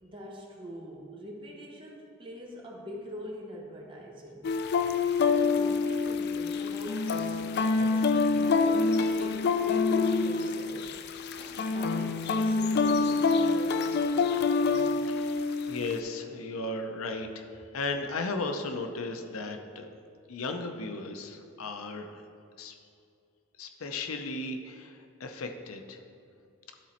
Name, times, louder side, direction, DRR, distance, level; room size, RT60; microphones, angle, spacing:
voice 1, 0.0-7.4 7.7-11.0 11.4-14.1, equal, 25° right, -2 dB, 1.2 m, -44 dB
sound 1, 4.4-16.0, left 4 dB, 50° left, 0.3 m, -26 dB
voice 2, 15.0-19.9 20.3-22.3 22.6-22.7 23.6-26.0, left 3 dB, 90° left, 6 dB, 0.6 m, -36 dB
12.0 x 4.1 x 4.3 m, 2.4 s
head